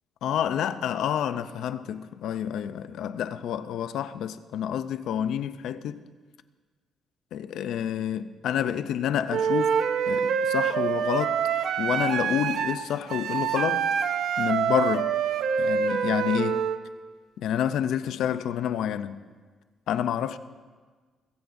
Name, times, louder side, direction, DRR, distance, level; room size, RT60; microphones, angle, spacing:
voice 1, 0.2-6.0 7.3-9.8 10.1-11.4 11.8-13.9 14.4-15.1 15.6-16.6 17.4-19.3 19.9-20.4, left 9 dB, 80° left, 0.5 m, -28 dB
Wind instrument woodwind instrument, 9.3-16.8, right 7 dB, 65° right, 0.6 m, -26 dB
21.0 x 16.0 x 2.6 m
cardioid pair, 165°, 0 cm